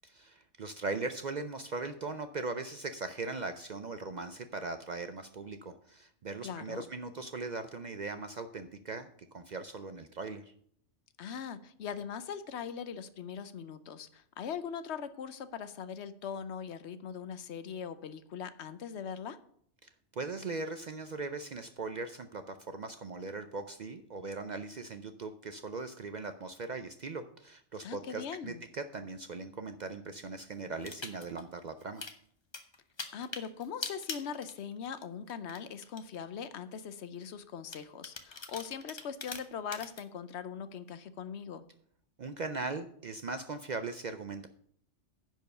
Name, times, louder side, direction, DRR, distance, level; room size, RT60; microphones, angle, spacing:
voice 1, 0.0-10.4 19.8-32.1 42.2-44.5, right 3 dB, 55° right, 9 dB, 0.5 m, -39 dB
voice 2, 6.4-6.8 11.2-19.4 27.8-28.6 33.1-41.6, left 7 dB, 70° left, 12 dB, 0.9 m, -41 dB
sound 1, 30.8-31.4 31.8-32.2 32.5-35.0 35.3-36.0 36.6-36.7 37.7-40.0, left 3 dB, 25° left, 0.7 m, -42 dB
10.5 x 4.6 x 6.6 m, 0.64 s
omnidirectional pair, 1.2 m